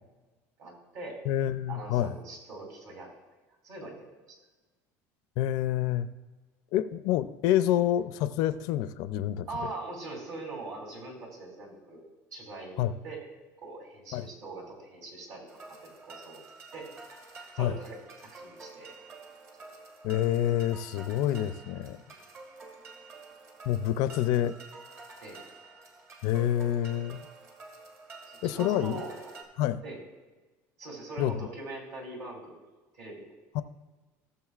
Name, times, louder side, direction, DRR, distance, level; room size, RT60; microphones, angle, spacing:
voice 1, 0.6-1.2 1.7-3.1 3.6-4.0 4.3-4.4 9.5-12.0 12.3-13.2 13.6-16.4 16.7-16.9 17.5-18.9 22.2-22.3 25.2-25.4 28.3-29.5 29.8-30.0 30.8-32.6 32.9-33.3, right 2 dB, 55° right, 1 dB, 3.0 m, -42 dB
voice 2, 1.3-2.1 5.4-6.1 6.7-9.5 12.8-12.9 14.1-14.3 17.6-17.7 20.0-22.0 23.7-24.5 26.2-27.2 28.4-29.0 29.6-29.8 31.2-31.4 33.5-33.6, left 12 dB, 70° left, 13 dB, 0.5 m, -27 dB
sound 1, 15.5-29.4, right 3 dB, 40° right, 1.9 m, -49 dB
17.0 x 6.9 x 2.4 m, 1.3 s
cardioid pair, 140°, 7 cm